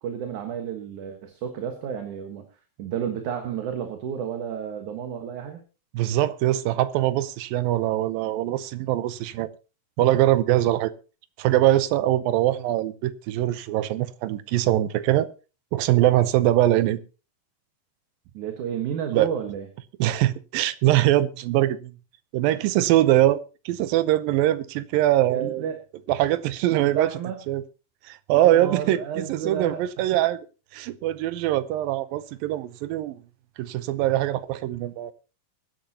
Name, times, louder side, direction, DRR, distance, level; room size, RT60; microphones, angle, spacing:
voice 1, 0.0-2.5 2.8-5.6 18.3-19.7 25.3-25.8 26.8-27.4 28.4-29.8, right 8 dB, 65° right, 2.7 m, -31 dB
voice 2, 5.9-9.5 10.0-10.9 11.4-15.3 15.7-17.0 19.1-19.3 20.0-21.9 22.3-23.4 23.7-25.6 26.1-27.1 27.5-27.6 28.0-30.4 30.7-33.2 33.6-35.1, right 14 dB, 90° right, 2.6 m, -22 dB
23.0 x 10.5 x 2.9 m
omnidirectional pair, 4.0 m